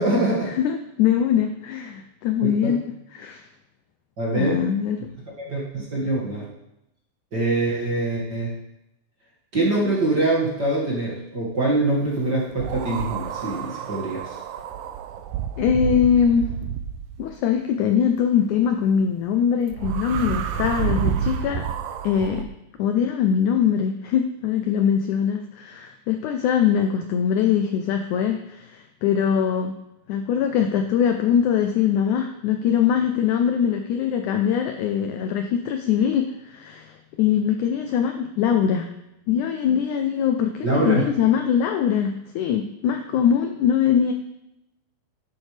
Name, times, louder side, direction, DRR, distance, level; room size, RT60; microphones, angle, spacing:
voice 1, 0.0-0.5 2.4-2.8 4.2-4.6 5.4-6.5 7.3-8.5 9.5-14.4 40.6-41.1, right 2 dB, 35° right, -5 dB, 1.9 m, -24 dB
voice 2, 0.6-2.8 3.1-3.4 4.3-5.1 15.6-16.5 17.2-21.7 22.0-22.5 22.8-29.7 30.1-38.9 39.3-44.1, left 8 dB, 80° left, 5 dB, 1.8 m, -22 dB
sound 1, 12.6-17.3 19.7-22.5, right 8 dB, 80° right, 2.2 m, -29 dB
11.5 x 10.5 x 3.3 m, 0.87 s
omnidirectional pair, 4.2 m